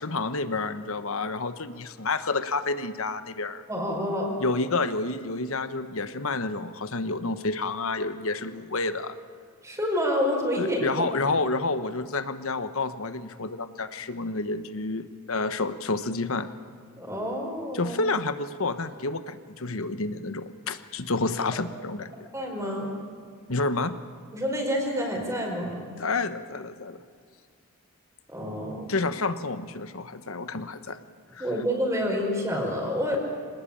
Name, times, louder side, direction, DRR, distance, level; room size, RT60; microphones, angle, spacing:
voice 1, 0.0-3.6 4.4-9.1 10.6-16.5 17.7-22.1 23.5-23.9 26.0-27.0 28.9-31.0 31.3-31.5, left 3 dB, 65° left, 11 dB, 1.2 m, -29 dB
voice 2, 3.7-4.3 9.6-11.1 17.0-18.0 22.3-23.0 24.3-25.8 28.3-28.9 31.4-33.2, equal, 15° right, 0 dB, 5.0 m, -28 dB
26.0 x 19.0 x 8.7 m, 2.2 s
head